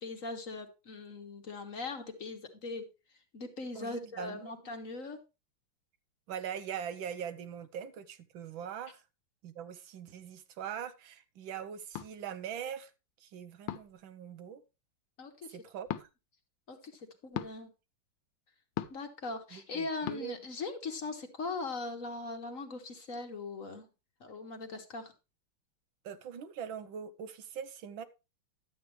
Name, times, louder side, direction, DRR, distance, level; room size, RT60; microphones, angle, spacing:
voice 1, 0.0-5.2 15.2-15.6 16.7-17.7 18.9-23.9 24.2-25.1, left 3 dB, 50° left, 1.3 m, -40 dB
voice 2, 3.8-4.5 6.3-9.0 9.4-12.9 13.2-14.6 15.5-16.1 19.5-20.4 26.0-28.0, right 8 dB, 80° right, 1.6 m, -42 dB
sound 1, 11.9-12.1 13.7-14.0 15.9-16.1 17.3-17.5 18.8-19.1 20.1-20.2, left 12 dB, 80° left, 1.4 m, -37 dB
11.5 x 8.3 x 3.2 m
omnidirectional pair, 2.1 m